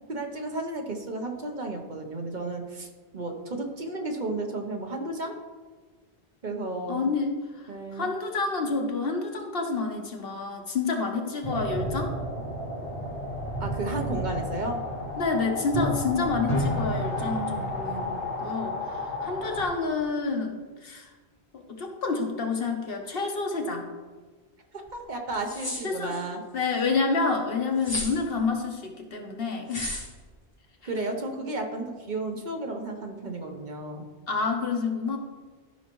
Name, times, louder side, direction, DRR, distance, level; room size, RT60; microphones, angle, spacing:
voice 1, 0.1-5.3 6.4-7.1 7.7-8.1 13.6-14.8 24.7-26.4 30.8-34.1, right 2 dB, 45° right, 3 dB, 1.0 m, -33 dB
voice 2, 6.9-12.2 15.2-21.1 21.5-23.9 25.8-26.2 26.5-30.1 34.3-35.2, left 4 dB, 65° left, 3 dB, 1.2 m, -29 dB
sound 1, 11.4-19.7, left 1 dB, 35° left, 2.1 m, -31 dB
sound 2, 24.9-25.0 25.3-26.2 27.8-28.2 29.7-30.1, left 1 dB, 20° left, 1.8 m, -33 dB
13.5 x 5.5 x 3.1 m, 1.4 s
omnidirectional pair, 1.1 m